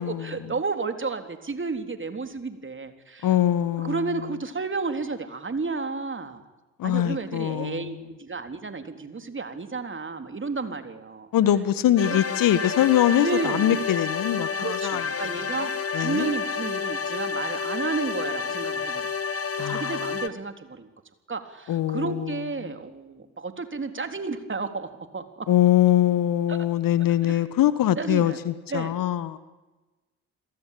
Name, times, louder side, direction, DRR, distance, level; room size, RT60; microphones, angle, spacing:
voice 1, 0.0-3.3 3.8-6.4 6.8-11.3 12.1-12.2 13.2-13.8 14.6-19.1 19.7-20.9 21.3-25.5 26.5-26.6 27.2-27.4 28.0-28.4 28.7-29.0, right 4 dB, 30° right, 7 dB, 3.7 m, -32 dB
voice 2, 3.2-4.0 6.8-7.9 11.3-15.0 15.9-16.3 19.6-19.9 21.7-22.3 25.5-29.4, left 12 dB, 60° left, 15 dB, 1.6 m, -23 dB
sound 1, 12.0-20.3, left 6 dB, 40° left, 2.0 m, -30 dB
29.5 x 22.0 x 8.6 m, 1.2 s
figure-of-eight pair, 40°, 38 cm